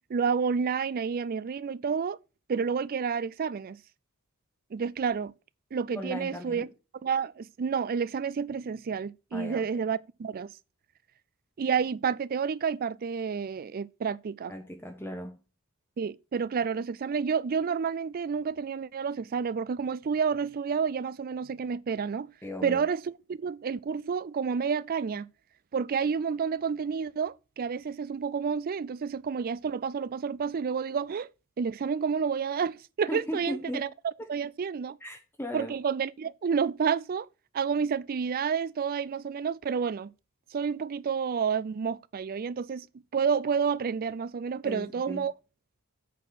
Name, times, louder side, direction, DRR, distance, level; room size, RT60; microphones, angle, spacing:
voice 1, 0.1-2.2 2.5-3.8 4.7-5.3 5.7-6.7 7.0-10.5 11.6-14.5 16.0-22.3 22.6-25.3 25.7-31.3 31.6-35.0 35.5-37.3 37.5-40.1 40.5-42.9 43.1-45.3, right 6 dB, 40° right, 0.4 m, -30 dB
voice 2, 5.9-6.7 9.3-9.7 14.5-15.4 22.4-22.8 33.1-33.9 34.2-34.3 35.0-35.7 44.6-45.3, equal, 10° left, 0.9 m, -37 dB
8.3 x 4.3 x 5.7 m
head